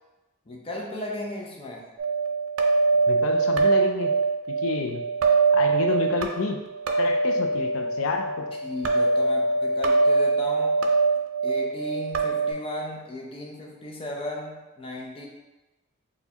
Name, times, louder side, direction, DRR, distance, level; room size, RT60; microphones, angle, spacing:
voice 1, 0.5-1.9 8.6-10.8 11.4-15.3, left 1 dB, 25° left, -1 dB, 0.5 m, -35 dB
sound 1, 2.0-12.5, right 3 dB, 90° right, 0.4 m, -23 dB
voice 2, 3.1-4.1 4.5-5.0 5.5-6.6 7.0-8.4, left 4 dB, 85° left, 4 dB, 0.4 m, -29 dB
4.3 x 2.2 x 2.8 m, 1.1 s
head